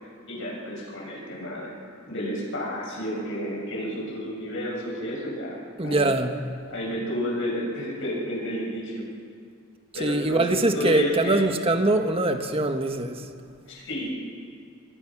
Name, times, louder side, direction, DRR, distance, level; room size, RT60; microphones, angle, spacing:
voice 1, 0.3-1.7 2.1-5.6 5.8-6.1 6.7-9.0 9.9-11.4 13.7-14.2, equal, 65° left, -3 dB, 7.4 m, -31 dB
voice 2, 5.8-6.4 10.0-13.2, right 2 dB, 25° right, 6 dB, 1.5 m, -23 dB
25.0 x 23.0 x 6.1 m, 2.3 s
head